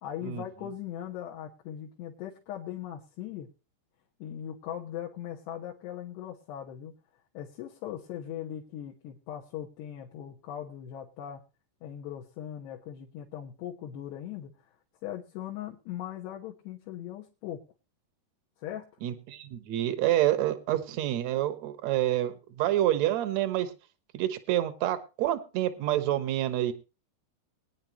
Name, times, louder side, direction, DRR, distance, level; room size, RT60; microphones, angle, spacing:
voice 1, 0.0-3.5 4.2-7.0 7.4-11.4 11.8-14.6 15.0-17.6 18.6-18.9, left 10 dB, 90° left, 0 dB, 3.4 m, -39 dB
voice 2, 19.0-23.7 24.1-26.7, right 13 dB, 70° right, 12 dB, 1.7 m, -28 dB
21.5 x 10.0 x 3.0 m, 0.31 s
omnidirectional pair, 4.7 m